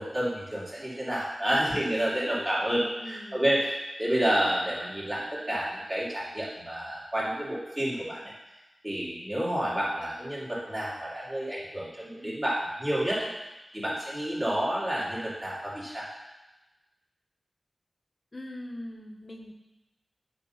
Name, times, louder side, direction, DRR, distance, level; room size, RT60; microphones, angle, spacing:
voice 1, 0.0-3.6 4.0-8.2 8.8-13.3 13.7-16.1, right 1 dB, 25° right, -7 dB, 2.7 m, -29 dB
voice 2, 3.0-3.5 18.3-19.5, left 1 dB, 40° left, 2 dB, 1.0 m, -41 dB
6.7 x 4.1 x 5.5 m, 1.0 s
wide cardioid pair, 60°, 0 cm